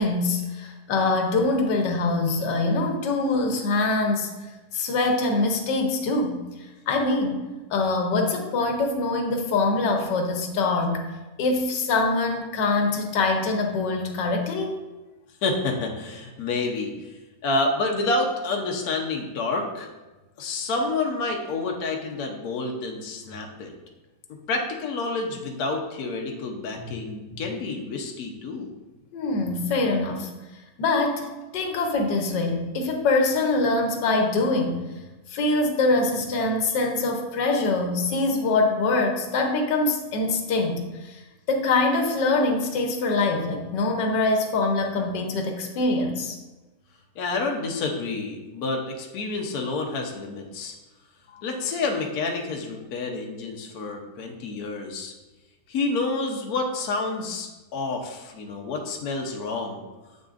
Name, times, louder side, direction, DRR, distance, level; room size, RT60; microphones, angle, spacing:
voice 1, 0.0-6.4 6.9-7.4 7.7-11.0 11.4-14.7 26.8-26.9 27.3-27.4 29.1-30.3 30.8-34.8 35.3-41.2 41.5-46.4, left 3 dB, 85° left, 3 dB, 1.5 m, -24 dB
voice 2, 15.4-17.1 17.4-19.9 20.4-23.7 24.5-28.7 47.2-50.7 51.4-55.1 55.7-59.8, left 3 dB, 65° left, 2 dB, 1.2 m, -29 dB
7.7 x 6.5 x 2.5 m, 1.1 s
omnidirectional pair, 1.8 m